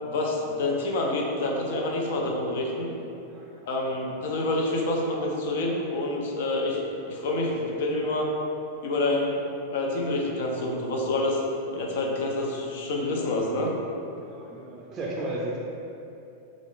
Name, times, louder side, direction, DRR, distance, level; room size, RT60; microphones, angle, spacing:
voice 1, 0.0-2.9 3.7-6.8 7.1-8.3 8.8-9.4 9.7-11.4 11.7-13.7, left 2 dB, 70° left, -1 dB, 0.5 m, -27 dB
voice 2, 3.3-4.0 14.3-15.6, right 1 dB, 35° right, -3 dB, 0.4 m, -35 dB
2.5 x 2.4 x 3.6 m, 2.8 s
hypercardioid pair, 110°, 0 cm